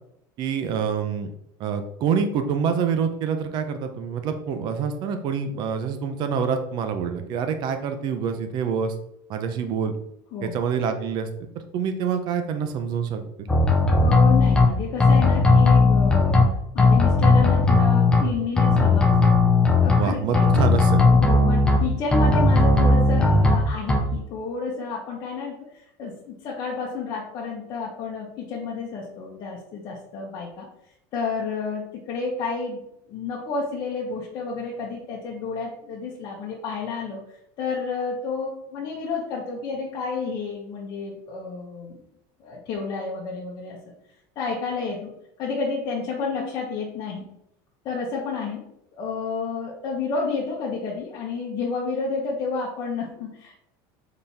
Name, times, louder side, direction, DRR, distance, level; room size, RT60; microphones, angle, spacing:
voice 1, 0.4-1.3 1.6-8.9 9.3-9.9 10.4-11.3 11.5-13.5 20.0-21.0, right 6 dB, 45° right, 7 dB, 0.8 m, -26 dB
sound 1, 13.5-14.7 15.0-16.4 16.8-18.2 18.6-20.0 20.3-21.8 22.1-23.6 23.9-24.0, left 3 dB, 10° left, 0.7 m, -17 dB
voice 2, 14.0-16.5 16.7-19.4 19.8-20.5 21.1-30.7 31.1-42.0 42.4-43.8 44.3-45.1 45.4-47.2 47.8-48.6 48.9-53.6, left 4 dB, 40° left, -4 dB, 1.2 m, -30 dB
5.5 x 4.2 x 4.2 m, 0.77 s
cardioid pair, 160°, 11 cm